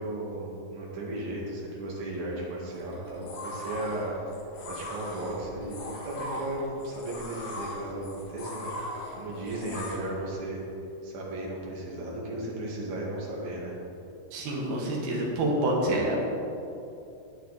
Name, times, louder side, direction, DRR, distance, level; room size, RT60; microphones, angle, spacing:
voice 1, 0.0-4.1 4.6-5.8 6.0-10.6 11.0-13.8 15.8-16.1, right 1 dB, 50° right, -5 dB, 3.0 m, -35 dB
sound 1, 2.7-10.0, left 1 dB, 75° left, 3.8 m, -39 dB
voice 2, 14.3-16.2, right 1 dB, 70° right, -2 dB, 3.2 m, -27 dB
11.5 x 9.1 x 4.1 m, 2.7 s
omnidirectional pair, 4.7 m